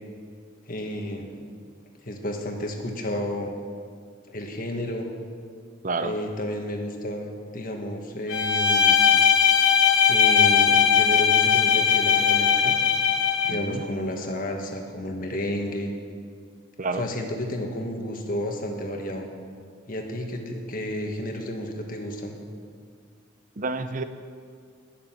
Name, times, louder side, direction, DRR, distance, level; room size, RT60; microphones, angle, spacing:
voice 1, 0.7-1.3 2.0-3.5 4.3-5.1 6.0-9.0 10.1-12.7 13.5-15.9 17.0-19.3 19.9-22.3, left 1 dB, 45° left, 2 dB, 1.6 m, -31 dB
voice 2, 5.8-6.2 13.5-13.8 16.8-17.1 23.6-24.0, right 3 dB, 40° right, 9 dB, 0.6 m, -29 dB
Bowed string instrument, 8.3-13.7, left 7 dB, 75° left, 1.1 m, -19 dB
19.5 x 6.9 x 7.3 m, 2.1 s
head